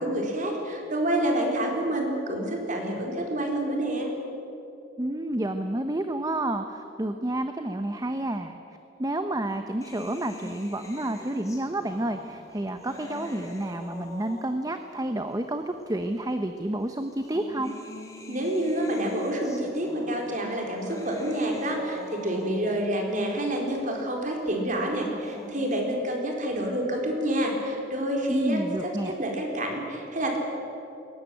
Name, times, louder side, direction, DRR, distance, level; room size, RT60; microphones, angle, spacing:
voice 1, 0.0-4.1 18.3-30.4, right 1 dB, 45° right, 1 dB, 4.3 m, -28 dB
voice 2, 5.0-8.6 9.0-17.8 28.3-29.1, right 1 dB, 20° right, 7 dB, 0.9 m, -30 dB
sound 1, 9.8-14.9 15.8-15.9 17.0-22.9 25.0-25.8, left 1 dB, 20° left, 3.3 m, -44 dB
21.0 x 18.0 x 9.2 m, 2.9 s
head